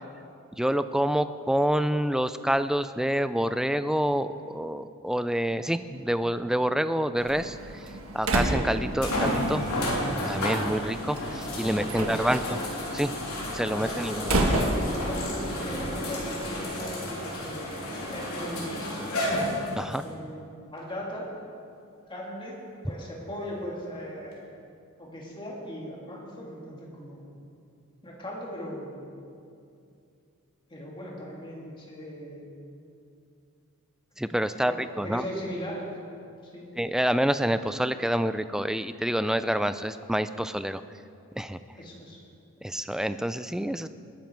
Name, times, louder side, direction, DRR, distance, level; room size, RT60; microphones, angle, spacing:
voice 1, 0.6-7.6 8.1-9.7 10.1-12.6 12.9-13.1 13.5-14.4 19.8-20.0 34.2-35.2 36.8-40.8 41.4-41.6 42.6-43.9, equal, 5° right, 12 dB, 0.3 m, -27 dB
Slam, 7.2-16.6, right 1 dB, 70° right, 1.5 m, -32 dB
sound 1, 7.9-8.0 9.0-20.0 20.8-20.9 24.3-24.4, left 1 dB, 85° left, 3.3 m, -32 dB
voice 2, 11.6-12.4 13.7-19.4 20.0-20.4 20.7-21.3 22.1-22.6 22.8-24.4 25.0-27.3 28.0-29.1 30.7-32.5 34.6-35.9 36.4-36.7 41.8-42.2, equal, 25° left, -3 dB, 2.7 m, -38 dB
20.0 x 10.5 x 4.6 m, 2.5 s
head